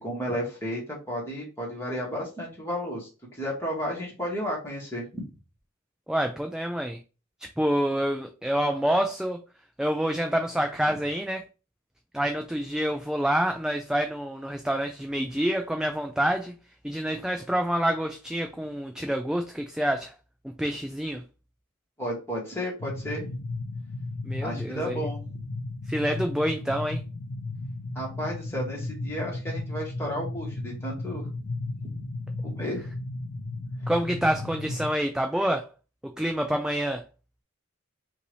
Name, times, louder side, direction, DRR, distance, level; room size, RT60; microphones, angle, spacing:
voice 1, 0.0-5.2 22.0-23.4 24.4-25.2 27.9-31.3 31.6-32.0 32.4-32.9, equal, 10° left, -3 dB, 1.8 m, -33 dB
voice 2, 6.1-7.0 7.6-9.4 9.8-11.4 12.1-16.5 16.8-20.1 20.6-21.2 24.3-25.1 25.9-27.0 33.9-35.7 36.2-37.0, equal, 5° right, 4 dB, 0.3 m, -27 dB
sound 1, 22.8-34.9, left 2 dB, 70° left, 0.5 m, -34 dB
5.4 x 2.6 x 3.2 m, 0.32 s
head